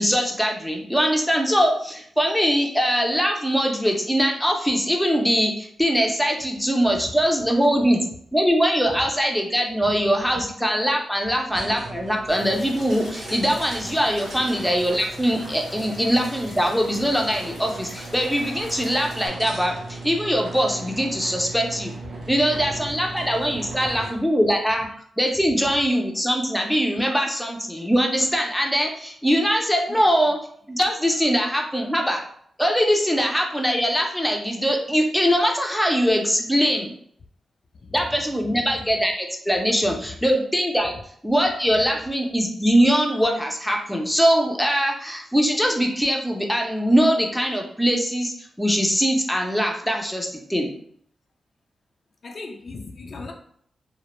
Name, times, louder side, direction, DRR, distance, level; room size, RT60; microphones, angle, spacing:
voice 1, 0.0-8.0 8.3-21.9 22.3-24.9 25.2-30.4 30.7-32.2 32.6-36.9 37.9-41.0 41.2-50.7, equal, 5° left, 0.5 m, -22 dB
sound 1, 11.5-24.3, right 3 dB, 85° right, 0.6 m, -38 dB
sound 2, 12.3-19.3, left 1 dB, 90° left, 0.7 m, -42 dB
voice 2, 52.2-53.3, left 3 dB, 60° left, 0.4 m, -38 dB
2.1 x 2.0 x 3.0 m
cardioid pair, 65°, 0 cm